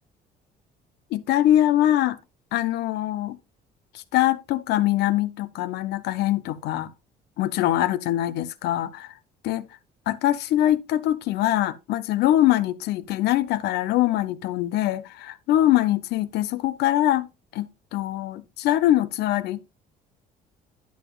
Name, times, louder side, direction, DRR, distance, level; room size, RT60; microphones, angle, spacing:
voice 1, 1.1-2.2 2.5-3.4 3.9-6.9 7.4-9.1 9.4-9.7 10.1-17.3 17.5-19.6, left 13 dB, 75° left, 0.6 m, -23 dB
10.5 x 7.0 x 2.3 m
cardioid pair, 110°, 17 cm